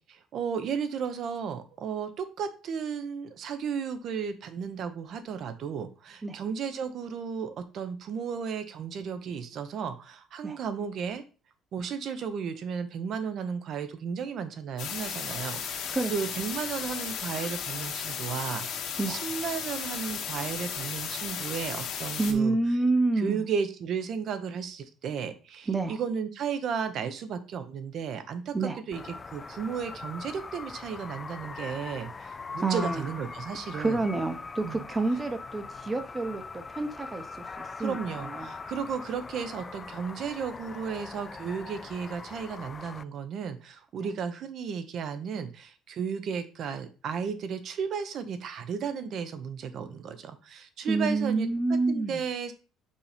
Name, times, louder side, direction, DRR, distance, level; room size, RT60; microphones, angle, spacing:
voice 1, 0.1-11.2 11.7-22.6 23.2-29.0 29.3-34.0 34.6-34.9 37.8-51.5 51.9-52.5, right 6 dB, 55° right, 0.9 m, -34 dB
sound 1, 14.8-22.3, left 7 dB, 65° left, 1.4 m, -35 dB
voice 2, 22.2-23.4 25.7-26.0 28.5-28.8 32.6-33.1 33.7-38.0 38.2-38.5 44.0-44.1 50.9-52.2, right 3 dB, 20° right, 0.9 m, -28 dB
sound 2, 28.9-43.0, left 4 dB, 25° left, 0.3 m, -41 dB
5.5 x 4.3 x 5.0 m
cardioid pair, 125°, 0 cm